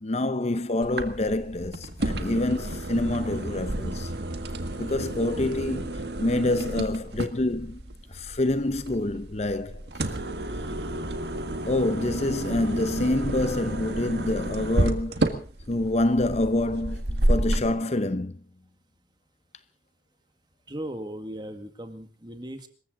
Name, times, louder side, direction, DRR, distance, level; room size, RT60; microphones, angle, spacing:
voice 1, 0.0-4.1 4.8-7.8 8.1-9.8 11.6-18.4, left 1 dB, 35° left, 0.8 m, -27 dB
sound 1, 0.8-17.7, right 1 dB, 65° right, 1.8 m, -31 dB
voice 2, 20.7-22.7, right 1 dB, 25° right, 1.9 m, -37 dB
26.0 x 14.5 x 3.9 m
head